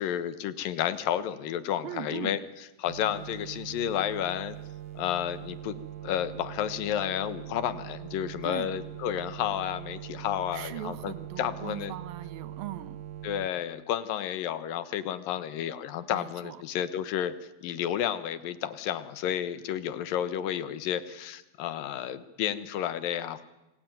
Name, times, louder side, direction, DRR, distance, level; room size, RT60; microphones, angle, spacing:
voice 1, 0.0-2.4 2.8-4.6 5.0-12.0 13.2-17.3 17.6-23.4, left 10 dB, 75° left, 13 dB, 2.9 m, -31 dB
voice 2, 1.8-2.4 8.4-8.7 10.5-13.0 16.1-16.6, right 12 dB, 80° right, 14 dB, 2.9 m, -39 dB
sound 1, 2.9-13.5, right 11 dB, 65° right, 2.9 m, -42 dB
27.5 x 23.5 x 9.3 m, 0.98 s
omnidirectional pair, 4.1 m